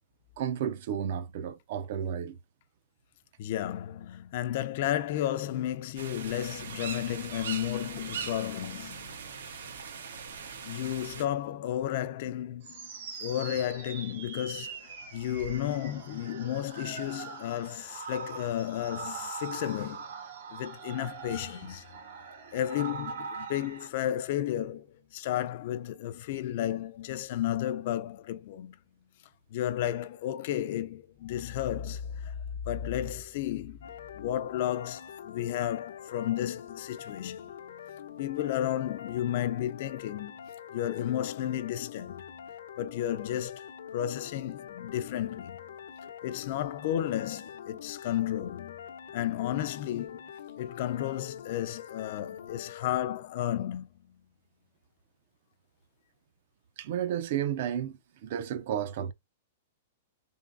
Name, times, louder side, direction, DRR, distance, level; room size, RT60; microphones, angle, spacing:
voice 1, 0.4-2.4 56.8-59.1, right 9 dB, 40° right, 0.4 m, -32 dB
voice 2, 3.4-9.1 10.6-12.9 13.2-20.0 20.5-21.8 22.5-24.9 25.1-28.7 29.5-32.4 32.6-33.8 34.2-37.4 38.2-40.3 40.7-42.2 42.8-45.6 46.0-48.8 49.1-50.2 50.6-53.9, left 12 dB, 40° left, 0.4 m, -33 dB
sound 1, 6.0-11.2, right 6 dB, 90° right, 1.0 m, -40 dB
sound 2, 12.6-23.9, right 5 dB, 65° right, 1.8 m, -42 dB
sound 3, 33.8-53.0, left 8 dB, 90° left, 0.8 m, -45 dB
3.8 x 3.5 x 2.5 m
supercardioid pair, 175°, 0 cm